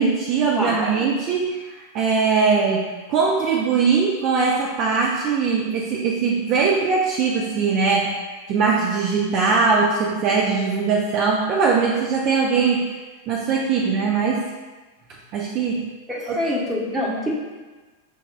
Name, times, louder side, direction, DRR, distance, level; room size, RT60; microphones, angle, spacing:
voice 1, 0.0-13.0 13.3-14.4 15.3-15.8 16.3-16.4, right 5 dB, 40° right, -2 dB, 0.4 m, -21 dB
voice 2, 0.6-1.1 16.1-17.4, left 1 dB, 10° right, -4 dB, 0.9 m, -25 dB
5.9 x 2.3 x 2.2 m, 1.3 s
figure-of-eight pair, 90°, 0 cm